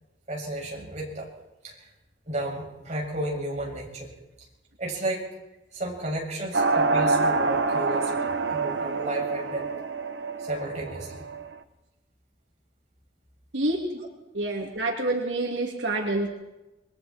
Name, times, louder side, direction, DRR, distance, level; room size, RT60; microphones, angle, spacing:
voice 1, 0.3-1.3 1.6-1.9 2.3-4.1 4.8-5.3 5.7-9.7 10.4-11.3, right 1 dB, 40° right, -2 dB, 7.1 m, -33 dB
sound 1, 6.5-11.5, right 3 dB, 65° right, 1.2 m, -26 dB
voice 2, 14.3-16.3, right 2 dB, 85° right, 0 dB, 3.0 m, -27 dB
28.0 x 22.5 x 4.5 m, 0.99 s
head